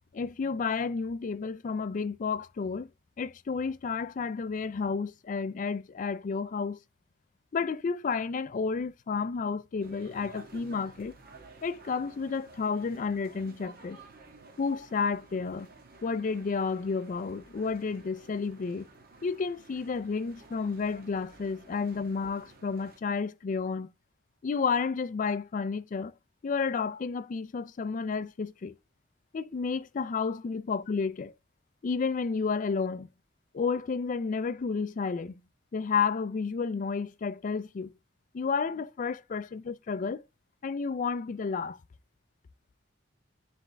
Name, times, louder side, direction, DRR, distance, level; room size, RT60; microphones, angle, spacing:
voice 1, 0.1-2.9 3.2-6.8 7.5-11.1 11.6-14.0 14.6-15.7 16.0-18.9 19.2-23.9 24.4-26.1 26.4-28.7 29.3-31.3 31.8-33.1 33.5-35.4 35.7-37.9 38.3-40.2 40.6-41.8, left 5 dB, 40° left, 0.4 m, -31 dB
sound 1, 9.8-23.0, right 2 dB, 50° right, 1.2 m, -53 dB
9.8 x 3.3 x 3.3 m
head